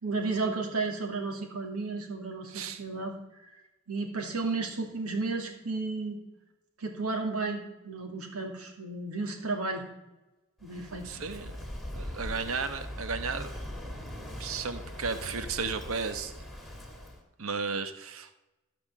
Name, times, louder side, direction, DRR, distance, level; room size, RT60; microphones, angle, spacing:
voice 1, 0.0-3.6 3.9-6.2 6.8-9.9 10.6-11.2, right 3 dB, 85° right, 2 dB, 2.5 m, -33 dB
Walk footsteps / Wind / Waves surf, 10.6-17.2, equal, ahead, 2.1 m, -41 dB
voice 2, 11.0-11.5 11.9-13.5 14.4-16.5 17.4-18.4, right 5 dB, 70° right, 10 dB, 1.1 m, -34 dB
14.0 x 5.9 x 7.3 m, 1.0 s
head